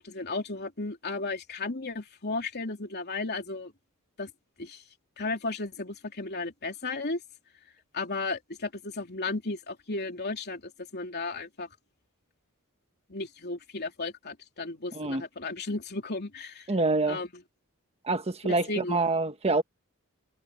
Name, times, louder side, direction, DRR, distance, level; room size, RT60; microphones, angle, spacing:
voice 1, 0.0-3.7 4.2-4.3 4.6-4.8 5.2-7.2 7.9-11.7 13.1-16.7 17.1-17.3 18.4-19.0, left 3 dB, 50° left, 3.2 m, -34 dB
voice 2, 14.9-15.2 16.7-17.2 18.0-19.6, right 3 dB, 30° right, 1.4 m, -26 dB
head